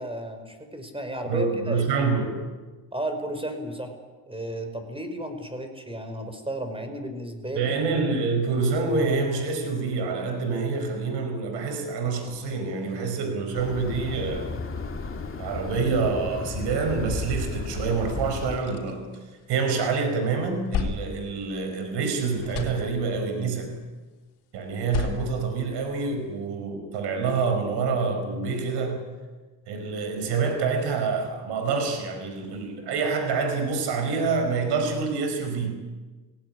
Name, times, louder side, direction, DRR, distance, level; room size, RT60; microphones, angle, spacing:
voice 1, 0.0-2.0 2.9-3.9 4.3-7.7, right 1 dB, 15° right, 7 dB, 5.0 m, -33 dB
voice 2, 1.2-2.4 7.5-14.5 15.4-19.1 19.5-23.7 24.5-29.1 29.7-35.8, right 4 dB, 75° right, 6 dB, 5.1 m, -27 dB
sound 1, 13.5-18.6, left 3 dB, 30° left, 2.7 m, -34 dB
sound 2, 18.4-19.9 20.2-22.1 22.3-23.4 24.7-26.3, left 7 dB, 70° left, 3.8 m, -35 dB
18.0 x 17.5 x 9.8 m, 1.3 s
supercardioid pair, 75°, 41 cm